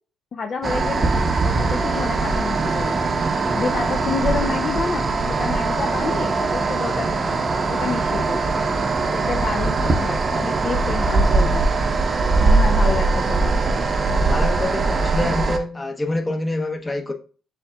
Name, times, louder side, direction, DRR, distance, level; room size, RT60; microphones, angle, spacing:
voice 1, 0.3-1.1 1.4-3.1 3.5-7.2 7.7-8.5 9.1-11.7 12.4-13.6 15.2-15.3, left 4 dB, 50° left, 0.4 m, -29 dB
sound 1, 0.6-15.6, right 3 dB, 35° right, 0.6 m, -21 dB
voice 2, 14.1-17.1, left 1 dB, 20° left, 0.8 m, -26 dB
5.8 x 3.6 x 2.3 m
cardioid pair, 90°, 0 cm